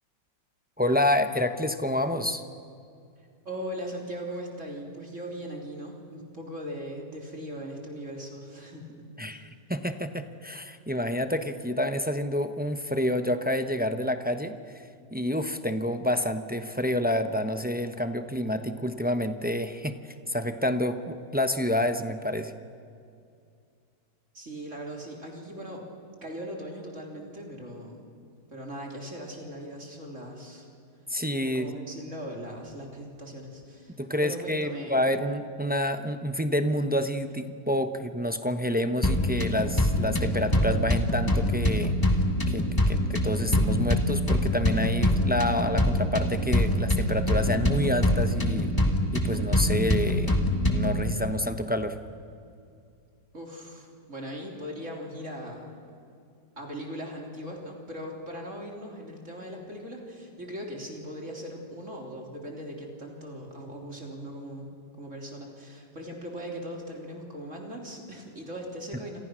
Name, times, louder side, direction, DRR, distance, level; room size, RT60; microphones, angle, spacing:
voice 1, 0.8-2.4 9.2-14.6 15.1-22.5 31.1-31.8 34.0-41.9 42.5-48.7 49.1-52.0, left 1 dB, 10° right, 8 dB, 0.4 m, -28 dB
voice 2, 3.5-9.5 24.3-25.8 26.2-28.1 28.5-30.7 31.4-35.0 53.3-55.8 56.6-64.7 65.0-69.2, equal, 40° right, 0 dB, 3.7 m, -39 dB
sound 1, 39.0-51.0, left 1 dB, 10° left, 2.1 m, -25 dB
29.0 x 26.0 x 6.3 m, 2.4 s
omnidirectional pair, 2.0 m